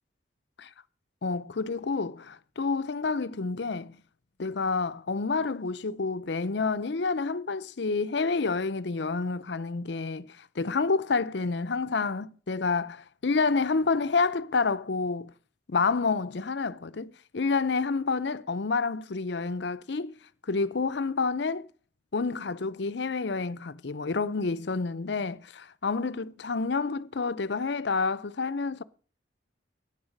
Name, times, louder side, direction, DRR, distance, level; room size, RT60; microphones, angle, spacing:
voice 1, 1.2-4.0 4.4-15.3 15.7-20.2 20.5-21.7 22.1-28.8, left 4 dB, 60° left, 0.6 m, -29 dB
11.0 x 9.6 x 6.4 m
head